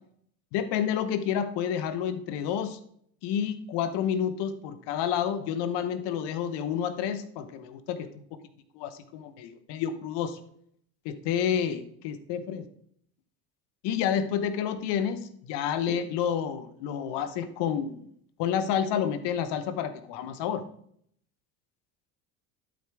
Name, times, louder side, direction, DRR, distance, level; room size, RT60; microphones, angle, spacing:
voice 1, 0.5-2.8 3.2-8.4 8.7-10.4 11.0-12.6 13.8-18.1 18.4-20.6, left 8 dB, 65° left, 11 dB, 1.1 m, -29 dB
12.0 x 5.2 x 3.5 m, 0.65 s
hypercardioid pair, 75°, 45 cm